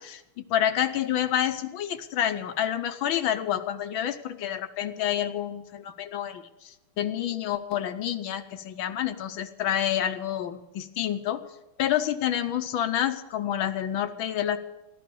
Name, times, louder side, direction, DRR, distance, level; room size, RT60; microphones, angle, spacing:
voice 1, 0.0-11.4 11.8-14.6, left 10 dB, 70° left, 10 dB, 1.5 m, -28 dB
14.5 x 12.5 x 6.9 m, 0.97 s
omnidirectional pair, 2.4 m